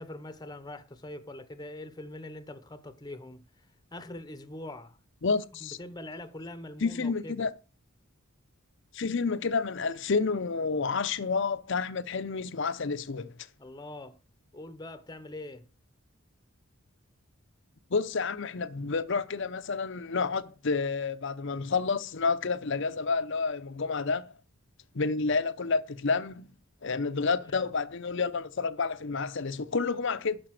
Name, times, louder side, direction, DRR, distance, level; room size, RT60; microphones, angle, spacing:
voice 1, 0.0-3.7 3.9-5.0 5.6-7.5 13.6-14.2 14.5-15.7 27.4-27.7, left 1 dB, 20° left, 0.8 m, -43 dB
voice 2, 5.2-5.8 6.8-7.5 8.9-13.3 17.9-24.3 24.9-26.5 26.8-30.4, left 4 dB, 55° left, 0.6 m, -29 dB
11.5 x 5.1 x 7.5 m
head